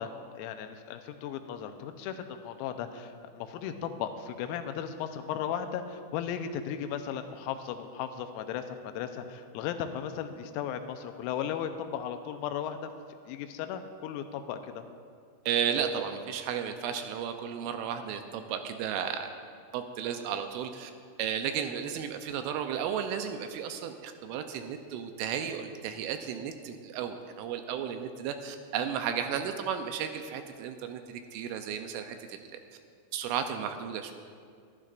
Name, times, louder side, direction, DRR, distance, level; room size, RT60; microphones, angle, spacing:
voice 1, 0.0-12.9 13.3-14.8, left 8 dB, 90° left, 7 dB, 3.5 m, -36 dB
voice 2, 15.5-19.3 19.7-20.9 21.2-32.4 33.1-34.1, right 8 dB, 85° right, 6 dB, 2.9 m, -33 dB
23.5 x 12.0 x 2.5 m, 2.2 s
omnidirectional pair, 5.9 m